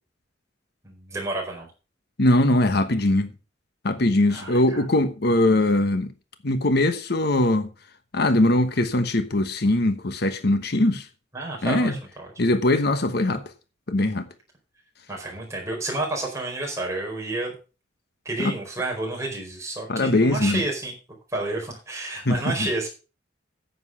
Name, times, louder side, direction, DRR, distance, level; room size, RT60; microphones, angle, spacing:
voice 1, 0.8-1.7 4.3-4.8 11.3-12.3 15.1-17.6 18.2-20.9 21.3-22.9, right 2 dB, 15° right, 4.6 m, -30 dB
voice 2, 2.2-3.3 3.8-6.1 6.4-7.7 8.1-11.1 11.6-11.9 12.4-13.4 13.9-14.3 18.4-18.5 19.9-20.6 22.3-22.7, left 1 dB, 60° left, 1.1 m, -21 dB
9.6 x 8.0 x 5.6 m
head